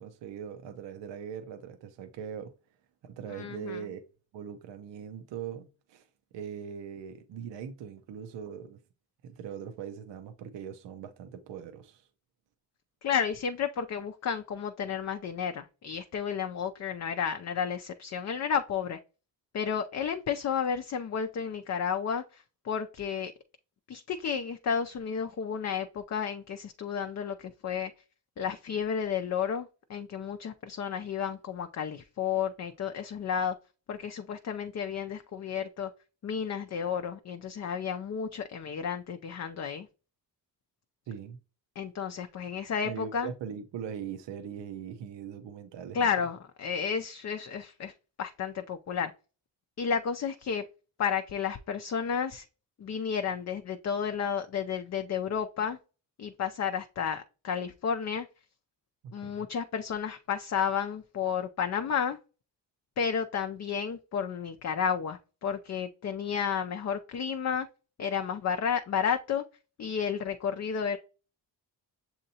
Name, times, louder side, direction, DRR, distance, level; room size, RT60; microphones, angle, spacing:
voice 1, 0.0-2.5 3.0-4.0 4.3-6.1 6.3-8.8 9.2-12.1 41.1-41.4 42.8-46.1 59.0-59.5, right 8 dB, 75° right, 0.7 m, -41 dB
voice 2, 3.3-3.8 13.0-19.0 19.5-23.3 23.9-27.9 28.4-33.6 33.9-35.9 36.2-39.9 41.8-43.3 45.9-47.9 48.2-49.1 49.8-50.6 51.0-52.5 52.8-55.8 56.2-58.3 59.1-62.2 63.0-67.7 68.0-69.4 69.8-71.0, left 7 dB, 40° left, 0.5 m, -32 dB
6.5 x 2.8 x 2.7 m
cardioid pair, 65°, 44 cm